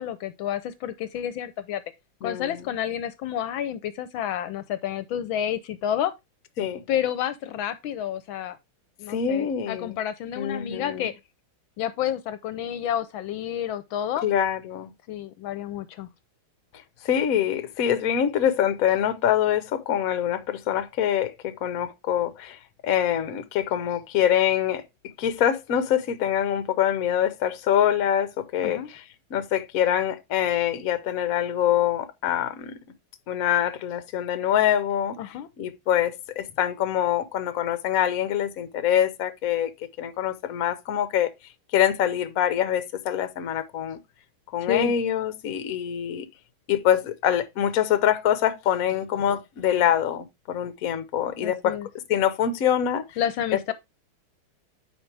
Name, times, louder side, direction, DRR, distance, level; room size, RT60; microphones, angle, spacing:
voice 1, 0.0-1.8 2.2-6.1 6.9-8.6 9.0-11.1 11.8-14.2 15.1-16.1 28.6-28.9 35.2-35.5 44.6-44.9 51.4-51.9 53.2-53.7, left 10 dB, 75° left, 1.4 m, -29 dB
voice 2, 2.2-2.6 6.6-6.8 9.1-10.0 10.3-11.1 14.2-14.9 17.0-24.8 25.2-29.0 29.3-32.8 33.3-35.2 35.6-39.7 40.0-41.3 41.7-44.0 44.5-46.3 46.7-51.8 52.1-53.0, left 10 dB, 55° left, 1.1 m, -24 dB
9.4 x 4.9 x 3.3 m
omnidirectional pair, 2.3 m